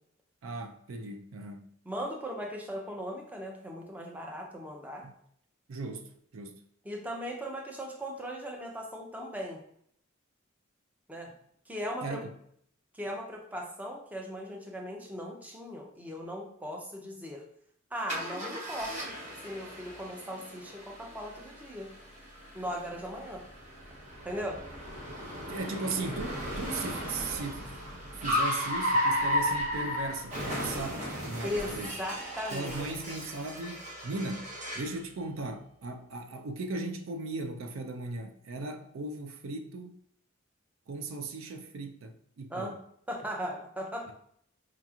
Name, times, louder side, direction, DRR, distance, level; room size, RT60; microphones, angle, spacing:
voice 1, 0.4-1.7 5.0-5.1 5.7-6.6 12.0-12.3 25.5-27.7 28.1-32.0 32.5-34.5 34.7-39.9 40.9-42.7 44.1-44.2, right 3 dB, 75° right, 0.4 m, -37 dB
voice 2, 1.9-5.1 6.8-9.6 11.1-11.3 11.7-12.2 12.9-17.4 17.9-19.2 19.4-21.9 22.5-23.4 24.2-24.6 31.4-33.3 42.5-42.7 43.1-44.1, equal, 10° right, 0.5 m, -38 dB
Car, 18.1-35.0, equal, 35° right, 0.8 m, -35 dB
4.9 x 2.8 x 2.4 m
head